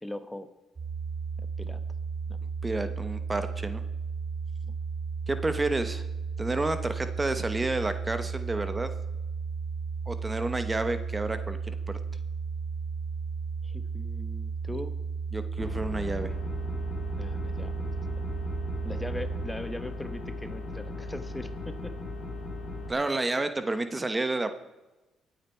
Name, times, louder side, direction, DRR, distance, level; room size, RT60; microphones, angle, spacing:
voice 1, 0.0-0.5 1.4-1.8 2.3-2.4 4.6-4.8 13.6-15.0 17.2-17.9 18.8-21.9, left 1 dB, 10° left, 10 dB, 1.1 m, -40 dB
sound 1, 0.8-19.5, right 5 dB, 35° right, 1.3 m, -34 dB
voice 2, 2.6-3.8 5.3-6.1 6.4-8.9 10.1-12.0 15.3-16.3 22.9-24.5, right 2 dB, 20° right, 10 dB, 1.1 m, -30 dB
sound 2, 15.6-22.9, left 2 dB, 50° left, 5.1 m, -37 dB
23.5 x 8.9 x 4.5 m, 1.1 s
cardioid pair, 90°, 0 cm